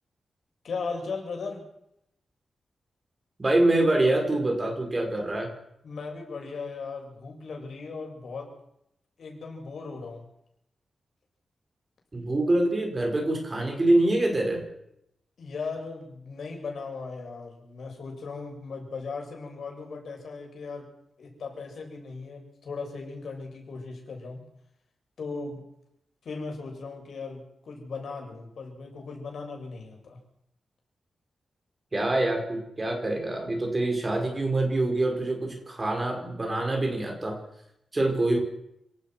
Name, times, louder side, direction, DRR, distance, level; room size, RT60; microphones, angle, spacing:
voice 1, 0.6-1.6 5.8-8.5 9.2-10.2 15.4-20.8 21.2-24.4 25.2-25.6 26.2-30.2, left 4 dB, 65° left, 1 dB, 7.6 m, -37 dB
voice 2, 3.4-5.5 12.1-14.6 31.9-37.4 37.9-38.4, right 2 dB, 25° right, 3 dB, 5.6 m, -25 dB
28.5 x 18.5 x 6.2 m, 0.77 s
wide cardioid pair, 140°, 0 cm